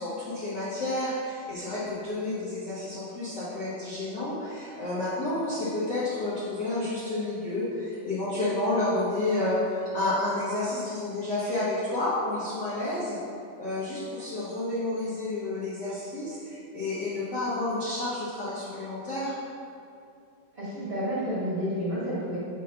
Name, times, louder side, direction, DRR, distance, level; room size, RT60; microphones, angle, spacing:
voice 1, 0.0-13.2 13.6-19.3, left 2 dB, 85° left, -11 dB, 0.9 m, -30 dB
voice 2, 20.5-22.4, equal, 40° right, -10 dB, 0.9 m, -30 dB
6.1 x 3.8 x 5.6 m, 2.5 s
omnidirectional pair, 3.7 m